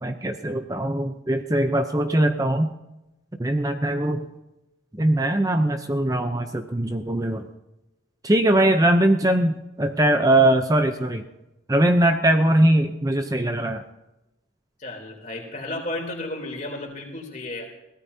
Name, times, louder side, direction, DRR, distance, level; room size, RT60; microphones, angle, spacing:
voice 1, 0.0-2.7 3.4-4.3 5.0-7.4 8.2-11.2 11.7-13.8, right 1 dB, 20° right, 6 dB, 0.6 m, -21 dB
voice 2, 14.8-17.6, left 2 dB, 40° left, 1 dB, 3.4 m, -33 dB
23.0 x 16.5 x 2.8 m, 0.95 s
head